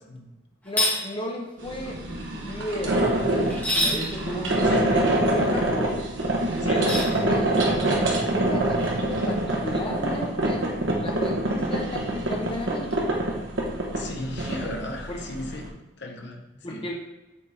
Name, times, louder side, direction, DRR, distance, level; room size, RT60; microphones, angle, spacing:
voice 1, 0.6-2.0 2.3-6.0 6.7-10.7 11.0-13.1 15.1-15.2 16.6-17.0, left 1 dB, 25° left, 0 dB, 1.1 m, -34 dB
sound 1, 0.7-1.0 3.5-4.0 6.8-7.1, left 1 dB, 10° left, 1.7 m, -24 dB
sound 2, 1.6-15.7, right 1 dB, 65° right, 1.3 m, -25 dB
voice 2, 6.5-7.0 13.9-16.4 16.7-16.9, left 1 dB, 55° left, 3 dB, 0.9 m, -36 dB
7.3 x 3.7 x 4.3 m, 1.1 s
head